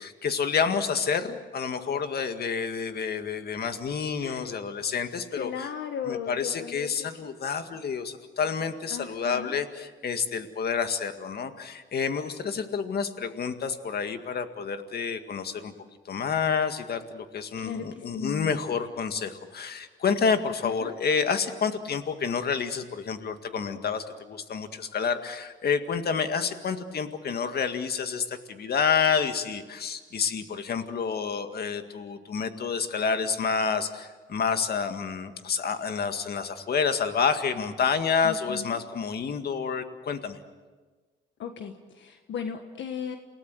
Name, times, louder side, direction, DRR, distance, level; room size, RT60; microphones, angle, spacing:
voice 1, 0.0-5.7 6.0-15.7 16.1-40.4, left 6 dB, 55° left, 8 dB, 2.0 m, -29 dB
voice 2, 5.4-6.9 8.9-9.5 17.6-18.6 20.6-20.9 38.2-38.8 41.4-43.2, left 7 dB, 70° left, 6 dB, 1.5 m, -36 dB
28.5 x 18.0 x 7.8 m, 1.4 s
cardioid pair, 90°, 20 cm